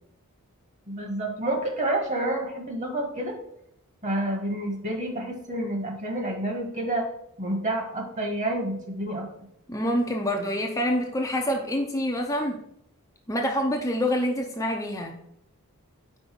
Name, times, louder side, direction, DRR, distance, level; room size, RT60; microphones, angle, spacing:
voice 1, 0.9-3.3 4.0-7.0 7.4-9.3, right 1 dB, 35° right, 2 dB, 1.6 m, -29 dB
voice 2, 9.7-12.6 13.3-15.1, equal, 15° left, 1 dB, 0.6 m, -26 dB
5.4 x 4.5 x 6.0 m, 0.76 s
head